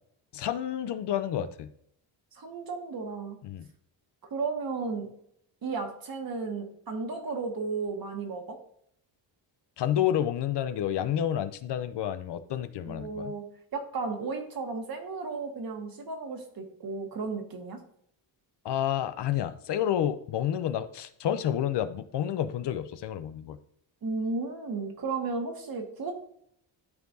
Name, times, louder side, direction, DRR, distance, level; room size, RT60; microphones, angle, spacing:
voice 1, 0.3-1.7 3.4-3.7 9.8-13.3 18.6-23.6, left 10 dB, 60° left, 11 dB, 0.7 m, -29 dB
voice 2, 2.3-3.4 4.3-5.1 5.6-8.6 12.9-13.4 13.7-17.8 24.0-26.1, right 4 dB, 50° right, 3 dB, 1.8 m, -34 dB
12.0 x 4.5 x 2.7 m, 0.69 s
cardioid pair, 105°, 46 cm